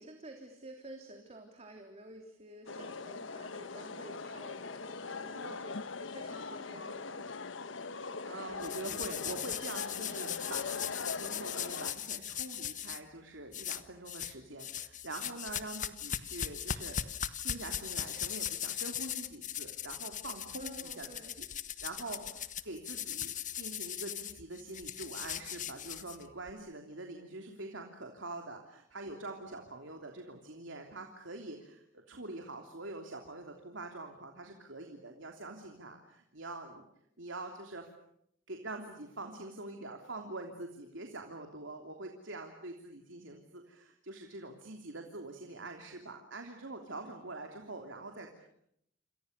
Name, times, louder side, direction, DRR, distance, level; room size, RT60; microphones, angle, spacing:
voice 1, 0.0-7.3 20.5-21.3 22.2-22.3, right 1 dB, 35° right, 3 dB, 3.4 m, -51 dB
sound 1, 2.7-11.9, left 4 dB, 75° left, 1.2 m, -41 dB
voice 2, 8.0-17.0 17.4-21.1 21.4-21.5 21.8-36.8 37.2-37.9 38.5-48.4, right 2 dB, 75° right, 3 dB, 3.2 m, -45 dB
sound 2, 8.6-13.0 13.5-14.3 14.6-26.5, left 9 dB, 40° left, 1.4 m, -39 dB
28.5 x 28.0 x 6.8 m, 0.73 s
head